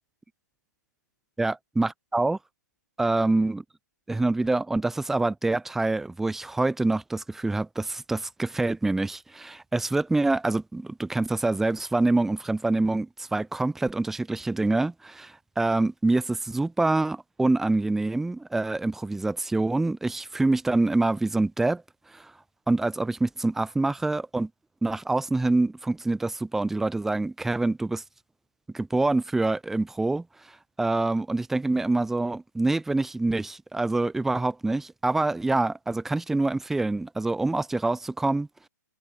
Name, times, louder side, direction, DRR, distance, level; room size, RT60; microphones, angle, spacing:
voice 1, 1.4-2.4 3.0-3.6 4.1-21.8 22.1-22.3 22.7-24.5 24.8-28.0 28.7-30.3 30.8-38.5, right 2 dB, 5° right, 0.4 m, -26 dB
hypercardioid pair, 135°, 10 cm